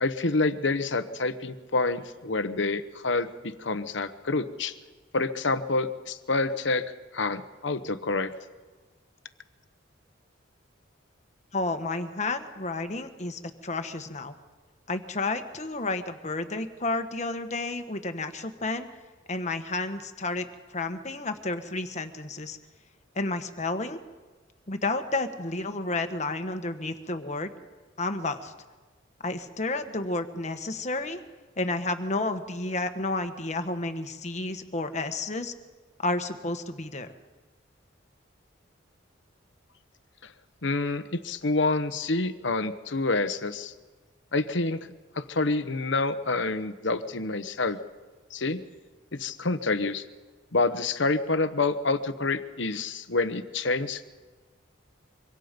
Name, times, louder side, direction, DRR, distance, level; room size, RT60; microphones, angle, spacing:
voice 1, 0.0-4.8 5.1-6.8 7.1-8.3 40.2-40.3 40.6-43.7 44.3-44.8 45.1-47.8 48.3-48.6 49.1-50.0 50.5-54.0, left 3 dB, 70° left, 11 dB, 1.1 m, -27 dB
voice 2, 11.5-14.3 14.9-18.9 19.3-22.6 23.1-24.0 24.7-27.5 28.0-28.5 29.2-31.2 31.6-35.5 36.0-37.1, left 2 dB, 35° left, 7 dB, 1.4 m, -31 dB
25.0 x 24.5 x 5.3 m, 1.3 s
head